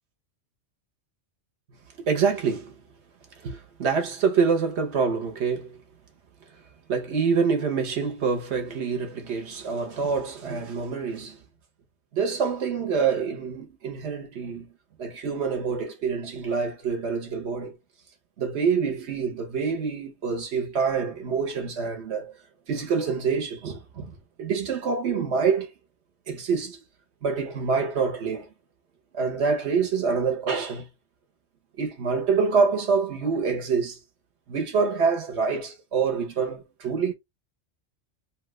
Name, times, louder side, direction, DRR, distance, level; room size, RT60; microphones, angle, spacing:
voice 1, 2.0-2.7 3.4-5.8 6.9-11.4 12.1-14.7 15.0-17.8 18.4-22.4 22.7-25.7 26.3-26.8 27.2-28.5 29.1-30.9 31.8-34.0 34.5-37.1, right 5 dB, 65° right, 1.1 m, -26 dB
3.0 x 2.3 x 3.0 m
omnidirectional pair, 1.2 m